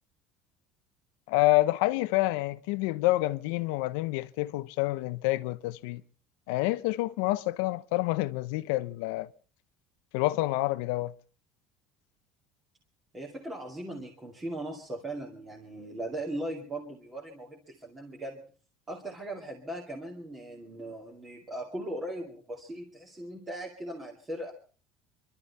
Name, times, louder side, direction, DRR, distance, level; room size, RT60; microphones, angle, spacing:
voice 1, 1.3-6.0 6.5-9.3 10.1-11.1, left 19 dB, 75° left, 0.8 m, -28 dB
voice 2, 13.1-18.4 18.9-24.5, right 1 dB, 15° right, 2.4 m, -39 dB
26.0 x 12.5 x 4.2 m
cardioid pair, 175°, 0 cm